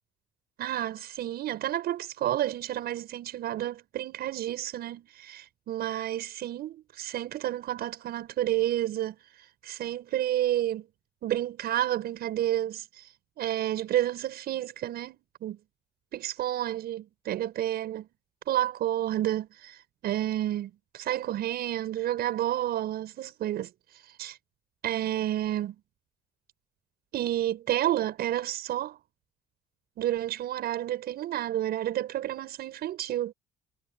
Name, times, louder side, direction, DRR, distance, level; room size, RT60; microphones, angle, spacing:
voice 1, 0.6-10.9 11.2-15.6 16.1-18.1 18.5-23.7 24.2-24.4 24.8-25.8 27.1-29.0 30.0-33.3, right 12 dB, 70° right, 7.1 m, -30 dB
cardioid pair, 110°, 17 cm